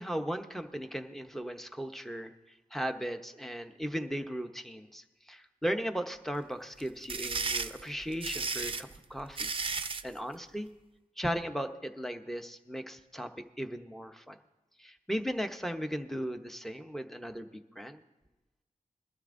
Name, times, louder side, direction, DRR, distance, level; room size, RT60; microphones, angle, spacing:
voice 1, 0.0-2.3 2.7-9.5 10.0-10.7 11.2-14.4 14.8-17.5 17.8-18.0, equal, ahead, 7 dB, 0.7 m, -37 dB
sound 1, 6.8-10.1, right 4 dB, 40° right, 0.5 m, -34 dB
21.0 x 13.0 x 2.5 m, 1.1 s
wide cardioid pair, 85°, 14 cm